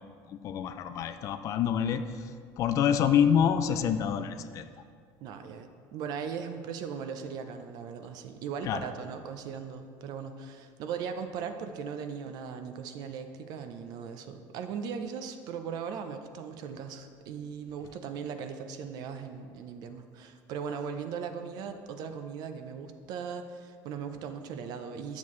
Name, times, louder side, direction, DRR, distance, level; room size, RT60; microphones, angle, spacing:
voice 1, 0.3-2.0 2.6-4.6 8.7-8.8, left 8 dB, 40° left, 10 dB, 0.4 m, -26 dB
voice 2, 5.2-25.2, right 6 dB, 55° right, 8 dB, 0.6 m, -38 dB
10.5 x 7.2 x 3.2 m, 2.1 s
cardioid pair, 160°, 8 cm